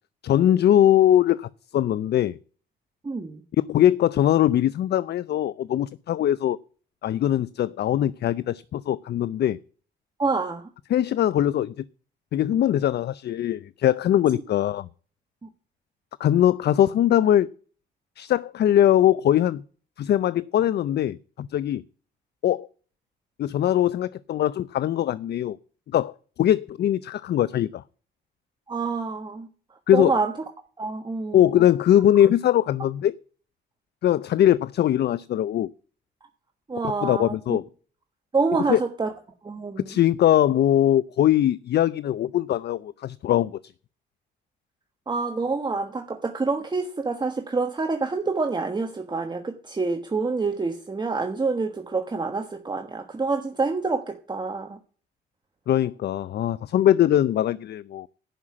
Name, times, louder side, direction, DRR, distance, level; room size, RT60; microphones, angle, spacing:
voice 1, 0.2-2.4 3.7-6.6 7.0-9.6 10.9-11.7 12.3-14.9 16.2-17.5 18.2-19.6 20.0-21.8 22.4-22.7 23.4-25.6 25.9-26.1 26.4-27.8 29.9-30.1 31.3-33.2 34.0-35.7 37.0-37.6 38.7-38.8 39.9-43.6 55.7-58.1, left 11 dB, 55° left, 0.5 m, -21 dB
voice 2, 3.0-3.4 10.2-10.7 15.4-15.5 28.7-29.5 29.9-30.3 30.8-31.6 36.7-37.6 38.3-39.1 39.4-40.0 45.1-54.8, right 4 dB, 20° right, 1.4 m, -27 dB
11.0 x 5.6 x 8.6 m
cardioid pair, 90°, 20 cm